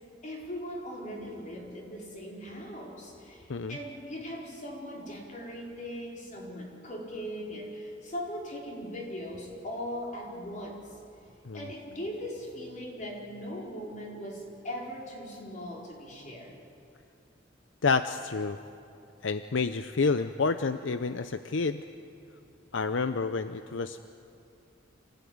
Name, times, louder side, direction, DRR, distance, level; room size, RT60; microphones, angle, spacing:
voice 1, 0.2-16.6, equal, 40° left, -2 dB, 4.8 m, -39 dB
voice 2, 17.8-18.6 19.2-21.8 22.7-24.0, left 4 dB, 75° left, 10 dB, 0.6 m, -29 dB
26.5 x 17.0 x 9.5 m, 2.6 s
head